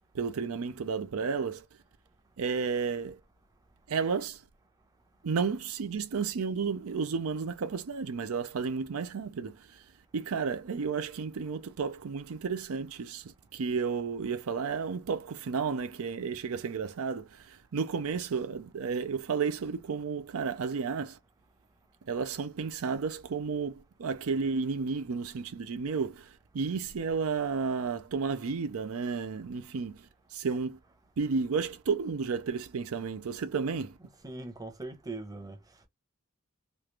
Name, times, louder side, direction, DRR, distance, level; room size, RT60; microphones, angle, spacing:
voice 1, 0.1-1.6 2.4-3.2 3.9-4.4 5.2-9.6 10.1-13.2 13.5-21.2 22.1-30.0 30.3-30.8 31.2-33.9, right 5 dB, 70° right, 0.5 m, -32 dB
voice 2, 34.0-35.6, right 2 dB, 15° right, 0.8 m, -41 dB
3.1 x 2.5 x 3.2 m
head